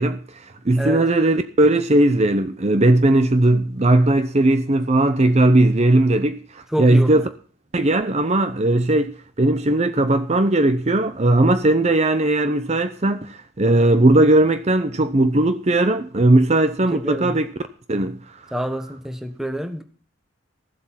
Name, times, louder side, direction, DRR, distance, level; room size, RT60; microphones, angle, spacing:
voice 1, 0.0-7.3 7.7-17.5 17.9-18.2, right 2 dB, 35° right, 0.7 m, -18 dB
voice 2, 6.7-7.2 16.9-17.4 18.5-19.8, equal, ahead, 1.4 m, -27 dB
15.5 x 7.9 x 5.9 m
head